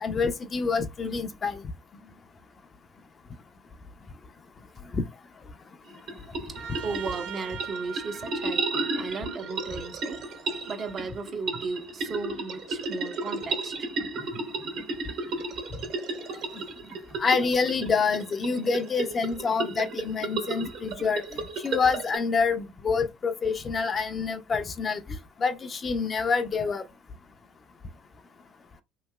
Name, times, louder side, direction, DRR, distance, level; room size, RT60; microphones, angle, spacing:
voice 1, 0.0-1.6 4.9-5.0 17.2-21.2 21.6-25.0 25.4-26.8, left 5 dB, 35° left, 0.5 m, -27 dB
sound 1, 5.9-22.2, right 3 dB, 65° right, 1.6 m, -33 dB
voice 2, 6.5-10.3 10.5-13.9, right 4 dB, 40° right, 0.7 m, -36 dB
Trumpet, 6.5-11.1, right 7 dB, 85° right, 0.6 m, -42 dB
3.1 x 2.7 x 2.2 m
supercardioid pair, 80°, 0 cm